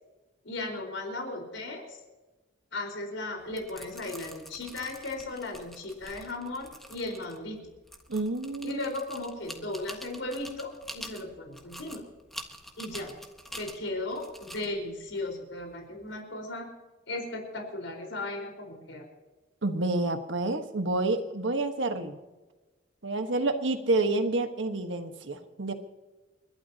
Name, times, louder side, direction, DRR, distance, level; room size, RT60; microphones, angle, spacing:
voice 1, 0.4-2.0 2.7-7.6 8.6-12.0 12.8-13.1 13.5-16.7 17.1-19.0, left 2 dB, 85° left, 2 dB, 4.6 m, -36 dB
sound 1, 3.4-16.2, equal, ahead, 1.4 m, -47 dB
voice 2, 8.1-8.8 19.6-22.2 23.0-25.7, right 2 dB, 80° right, 7 dB, 1.4 m, -29 dB
30.0 x 12.0 x 2.9 m, 1.2 s
head